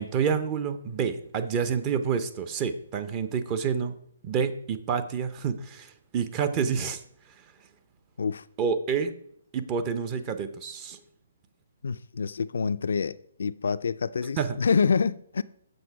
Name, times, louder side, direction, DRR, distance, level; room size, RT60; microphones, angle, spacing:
voice 1, 0.0-3.9 4.2-7.0 8.6-9.1 9.5-11.0 14.4-14.5, right 6 dB, 25° right, 0.6 m, -28 dB
voice 2, 11.8-15.4, left 5 dB, 75° left, 0.3 m, -27 dB
7.8 x 6.0 x 4.7 m
hypercardioid pair, 145°, 0 cm